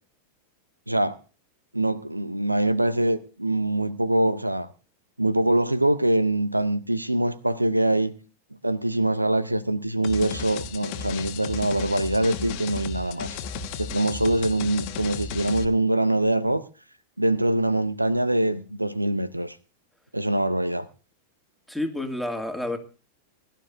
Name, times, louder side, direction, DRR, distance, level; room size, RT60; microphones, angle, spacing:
voice 1, 0.9-1.2 1.7-4.7 5.2-8.1 8.6-13.4 13.8-16.6 17.2-19.6 20.1-20.9, right 1 dB, 85° right, 0.7 m, -24 dB
sound 1, 10.0-15.6, left 5 dB, 45° left, 1.3 m, -34 dB
voice 2, 21.7-22.8, left 1 dB, ahead, 2.2 m, -29 dB
21.5 x 12.0 x 2.6 m
figure-of-eight pair, 90°, 0 cm